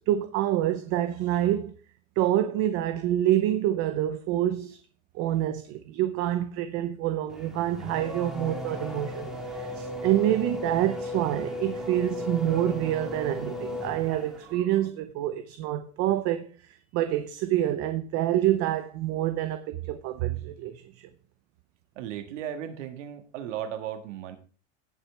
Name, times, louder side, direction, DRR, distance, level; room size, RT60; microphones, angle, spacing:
voice 1, 0.1-1.7 2.2-4.8 5.1-21.1, right 13 dB, 40° right, 0.7 m, -27 dB
Race car auto racing / Accelerating revving vroom, 7.3-14.6, left 1 dB, ahead, 1.8 m, -36 dB
voice 2, 21.9-24.4, right 10 dB, 90° right, 1.8 m, -36 dB
17.0 x 6.0 x 3.4 m
supercardioid pair, 160°, 35 cm